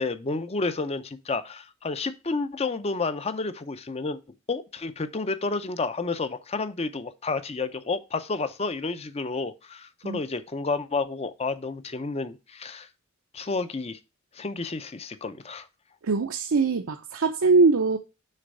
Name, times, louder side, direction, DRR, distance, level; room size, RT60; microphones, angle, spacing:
voice 1, 0.0-4.2 4.5-12.9 13.3-14.0 14.3-15.7, left 3 dB, 30° left, 0.6 m, -30 dB
voice 2, 16.0-18.0, right 4 dB, 75° right, 0.6 m, -22 dB
6.6 x 3.4 x 5.3 m
head